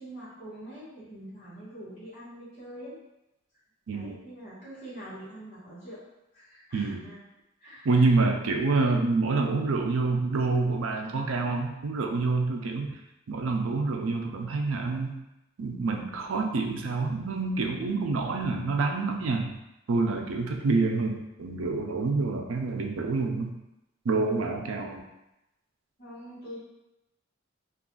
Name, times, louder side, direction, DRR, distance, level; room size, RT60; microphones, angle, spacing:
voice 1, 0.0-3.0 3.9-6.0 6.3-7.2 7.6-8.8 26.0-26.6, right 1 dB, 35° left, -13 dB, 1.1 m, -44 dB
voice 2, 7.8-12.9 13.3-15.2 15.6-19.5 19.9-23.5 24.0-25.0, right 3 dB, 85° right, 2 dB, 0.4 m, -27 dB
2.4 x 2.4 x 3.7 m, 0.92 s
head